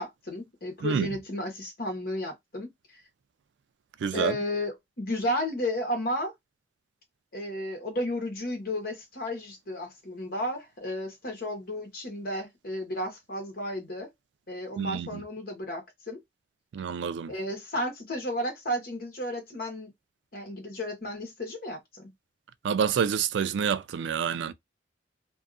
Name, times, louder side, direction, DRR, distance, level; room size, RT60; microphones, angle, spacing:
voice 1, 0.0-3.0 4.1-6.3 7.3-14.1 14.5-16.2 17.3-19.9 20.3-22.1, left 1 dB, 55° left, 1.0 m, -33 dB
voice 2, 4.0-4.4 14.8-15.2 16.7-17.3 22.6-24.5, right 7 dB, 90° right, 0.3 m, -28 dB
2.7 x 2.3 x 2.4 m
head